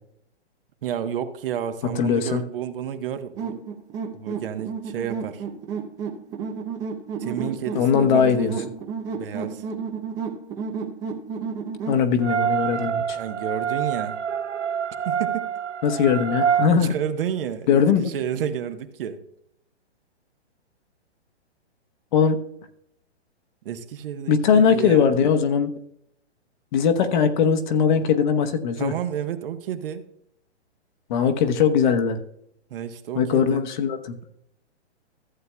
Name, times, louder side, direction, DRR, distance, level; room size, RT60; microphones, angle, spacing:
voice 1, 0.8-3.6 4.1-5.4 7.2-8.7 9.1-9.7 13.2-14.2 15.0-15.5 16.7-19.2 23.6-25.1 28.8-30.1 32.7-33.6, right 9 dB, 55° right, 9 dB, 1.1 m, -31 dB
voice 2, 1.9-2.4 7.7-8.5 11.9-13.2 15.8-16.9 17.7-18.1 22.1-22.4 24.3-25.7 26.7-28.9 31.1-32.2 33.1-34.1, left 7 dB, 45° left, 6 dB, 1.1 m, -20 dB
sound 1, 3.4-12.0, right 5 dB, 10° right, 0.4 m, -32 dB
sound 2, 12.2-16.7, right 8 dB, 90° right, 0.8 m, -26 dB
15.0 x 7.9 x 2.2 m, 0.72 s
hypercardioid pair, 145°, 34 cm